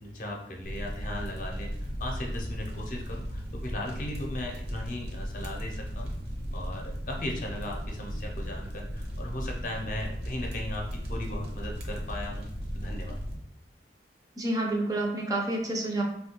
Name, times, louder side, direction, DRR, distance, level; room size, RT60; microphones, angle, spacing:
voice 1, 0.0-6.1 6.5-12.5 12.7-13.2, left 1 dB, 45° left, 0 dB, 0.6 m, -37 dB
sound 1, 0.6-13.3, equal, 60° right, 0.6 m, -36 dB
voice 2, 14.4-16.0, right 2 dB, 20° right, 0 dB, 0.4 m, -29 dB
3.6 x 2.3 x 2.8 m, 0.74 s
head